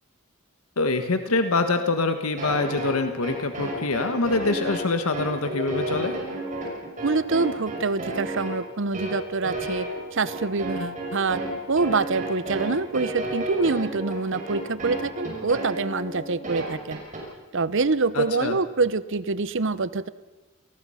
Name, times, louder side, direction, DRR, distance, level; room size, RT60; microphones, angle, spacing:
voice 1, 0.8-6.2 18.1-18.6, left 3 dB, 85° left, 7 dB, 1.4 m, -25 dB
sound 1, 2.4-17.2, right 1 dB, 35° right, 6.5 m, -32 dB
voice 2, 7.0-9.9 10.1-11.4 11.7-17.0 17.5-20.1, right 3 dB, 60° right, 16 dB, 0.8 m, -25 dB
28.0 x 18.5 x 5.7 m, 1.2 s
head